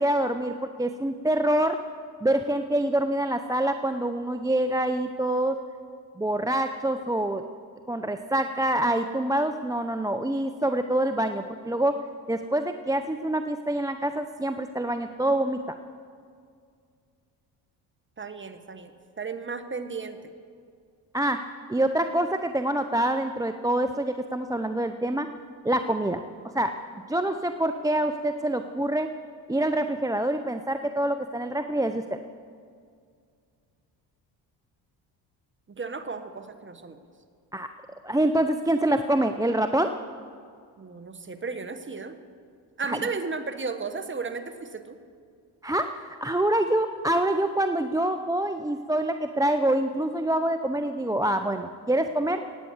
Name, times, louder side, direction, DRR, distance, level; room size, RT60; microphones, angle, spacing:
voice 1, 0.0-1.8 2.2-5.6 6.2-7.4 7.9-12.0 12.3-15.7 21.1-21.4 21.7-25.3 25.6-26.2 26.5-26.8 27.1-29.1 29.5-32.2 37.5-37.7 38.0-40.0 42.9-43.0 45.6-52.4, right 1 dB, 10° right, 8 dB, 0.5 m, -26 dB
voice 2, 18.2-18.9 19.2-20.3 35.7-37.0 40.8-42.2 42.8-45.0, right 4 dB, 25° right, 9 dB, 1.4 m, -34 dB
18.5 x 9.0 x 7.2 m, 2.2 s
supercardioid pair, 75°, 46 cm